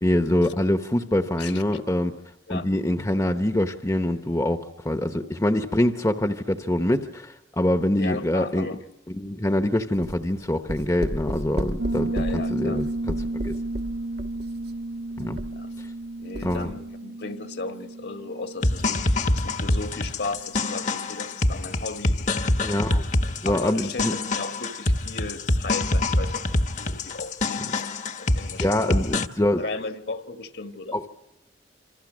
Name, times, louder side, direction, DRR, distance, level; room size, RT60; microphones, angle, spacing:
voice 1, 0.0-2.1 2.5-8.7 9.1-13.6 15.2-15.4 16.4-16.7 22.6-23.0 23.4-24.1 28.6-29.6 30.9-31.1, left 1 dB, 15° left, 0.9 m, -25 dB
voice 2, 8.0-8.8 12.1-12.8 15.5-15.7 16.2-22.2 23.4-26.5 26.8-29.0 29.6-31.0, left 3 dB, 60° left, 1.6 m, -35 dB
sound 1, 9.9-16.0 16.3-16.8, right 1 dB, 60° right, 1.3 m, -34 dB
Piano, 11.8-20.3, right 2 dB, 85° right, 1.2 m, -33 dB
sound 2, 18.6-29.3, left 2 dB, 40° left, 1.1 m, -25 dB
27.5 x 26.0 x 6.3 m
head